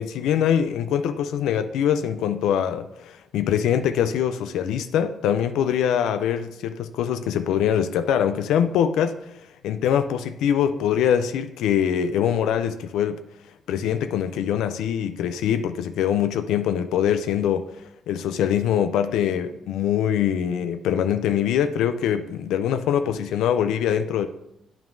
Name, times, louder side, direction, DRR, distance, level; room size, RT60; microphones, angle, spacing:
voice 1, 0.0-9.3 9.6-13.2 13.7-17.7 18.1-24.3, left 9 dB, 85° left, 0.3 m, -23 dB
9.0 x 5.8 x 2.6 m
cardioid pair, 90°, 0 cm